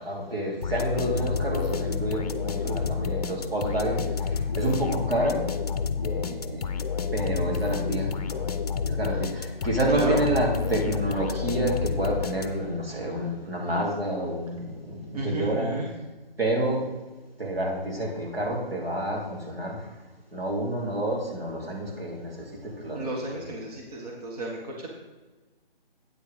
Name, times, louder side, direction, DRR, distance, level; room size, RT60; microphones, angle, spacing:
voice 1, 0.0-5.4 6.0-6.6 7.1-8.4 8.8-15.8 16.4-16.8 17.4-19.9 20.3-23.1 23.3-23.4, right 1 dB, 80° right, -2 dB, 3.1 m, -29 dB
sound 1, 0.6-12.8, left 6 dB, 40° left, 0.6 m, -29 dB
voice 2, 9.9-10.3 15.1-15.9 22.9-24.9, right 1 dB, 40° right, -1 dB, 1.6 m, -31 dB
9.0 x 6.8 x 5.1 m, 1.2 s
figure-of-eight pair, 145°, 29 cm